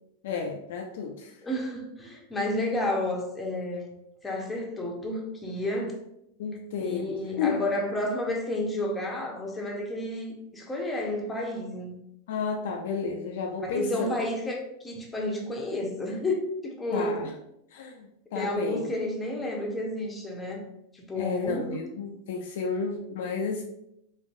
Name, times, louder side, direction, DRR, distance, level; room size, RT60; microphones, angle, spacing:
voice 1, 0.2-1.3 6.4-7.6 12.3-14.1 16.9-17.3 17.7-18.9 21.2-23.6, left 5 dB, 55° left, 1 dB, 0.4 m, -32 dB
voice 2, 1.4-3.9 4.2-6.0 6.8-12.0 13.6-17.3 18.3-20.7 20.9-21.8, left 1 dB, 10° left, 0 dB, 0.7 m, -31 dB
4.1 x 2.5 x 2.6 m, 0.80 s
figure-of-eight pair, 90°, 0 cm